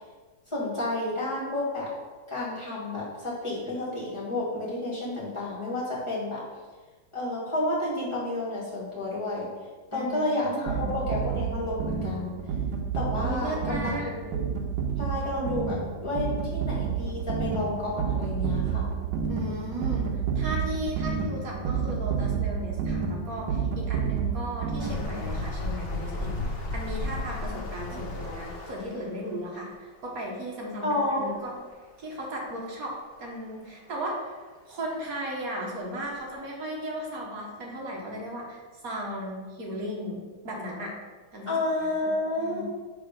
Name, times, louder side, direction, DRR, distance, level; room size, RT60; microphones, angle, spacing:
voice 1, 0.5-1.9 2.3-6.4 7.1-9.5 9.9-12.3 12.9-13.9 15.0-18.9 30.8-31.3 41.5-42.6, left 2 dB, 15° left, -7 dB, 1.9 m, -30 dB
voice 2, 9.9-10.9 13.2-14.2 19.3-26.3 26.7-31.5 32.0-40.9 41.3-41.9 42.4-42.6, equal, 55° right, -2 dB, 1.5 m, -36 dB
sound 1, 10.7-25.3, right 6 dB, 75° right, 1.3 m, -30 dB
sound 2, 24.8-29.1 31.1-31.2 31.4-31.5 32.4-32.5 34.9-35.0 35.6-35.7 36.2-36.3, left 2 dB, 55° left, 0.7 m, -33 dB
6.9 x 3.3 x 5.3 m, 1.4 s
omnidirectional pair, 2.1 m